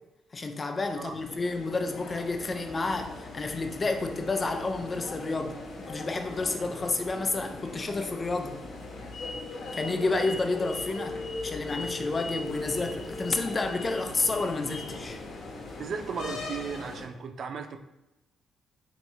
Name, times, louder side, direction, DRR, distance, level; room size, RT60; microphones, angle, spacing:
voice 1, 0.3-8.6 9.7-11.2 11.4-15.2, left 3 dB, 30° left, 6 dB, 0.5 m, -30 dB
sound 1, 0.8-17.1, left 2 dB, 60° left, 0.8 m, -39 dB
voice 2, 15.8-17.8, right 5 dB, 60° right, 6 dB, 0.4 m, -35 dB
4.4 x 3.0 x 2.7 m, 0.92 s
cardioid pair, 90°, 0 cm